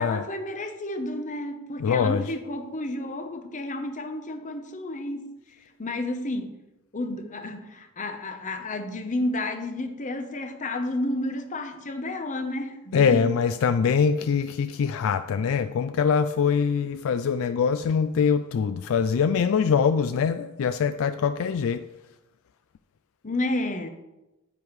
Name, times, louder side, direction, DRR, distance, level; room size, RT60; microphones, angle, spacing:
voice 1, 0.0-5.3 5.8-6.6 6.9-13.3 23.2-23.9, left 1 dB, 35° left, 8 dB, 0.8 m, -31 dB
voice 2, 1.8-2.3 12.9-21.9, left 6 dB, 65° left, 11 dB, 0.3 m, -23 dB
9.9 x 8.9 x 3.2 m, 1.0 s
head